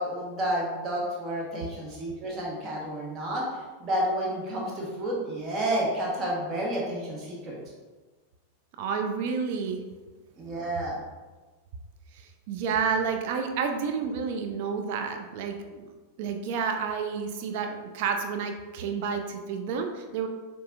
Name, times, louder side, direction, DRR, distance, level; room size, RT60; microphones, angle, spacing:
voice 1, 0.0-7.6 10.4-11.0, right 1 dB, 30° right, -3 dB, 1.3 m, -30 dB
voice 2, 8.8-9.8 12.2-15.9 16.2-20.3, right 6 dB, 50° right, 5 dB, 0.4 m, -30 dB
6.6 x 2.4 x 2.5 m, 1.3 s
figure-of-eight pair, 90°, 0 cm